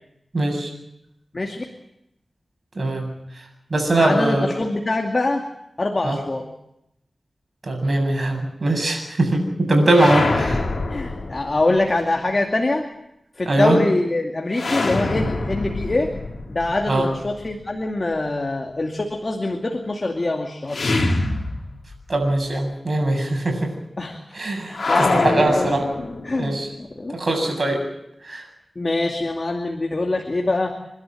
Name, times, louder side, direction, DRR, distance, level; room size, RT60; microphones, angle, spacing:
voice 1, 0.3-0.7 2.8-3.1 3.7-4.5 6.0-6.2 7.6-10.6 13.5-13.8 16.9-17.1 22.1-23.7 24.3-25.8 26.4-26.7 27.1-27.8 28.3-28.4, right 2 dB, 55° right, 3 dB, 7.7 m, -21 dB
voice 2, 1.3-1.6 3.9-5.4 5.8-6.5 10.0-10.1 10.9-12.9 13.4-16.1 16.5-20.8 24.0-24.4 24.7-25.7 26.2-27.1 28.8-30.8, left 2 dB, 40° left, 2 dB, 2.5 m, -24 dB
sound 1, 9.9-11.9 14.5-17.5 20.7-22.1 22.4-22.5 24.7-26.5, left 2 dB, 65° left, 3.8 m, -25 dB
29.5 x 12.5 x 9.1 m, 0.82 s
wide cardioid pair, 65°, 0 cm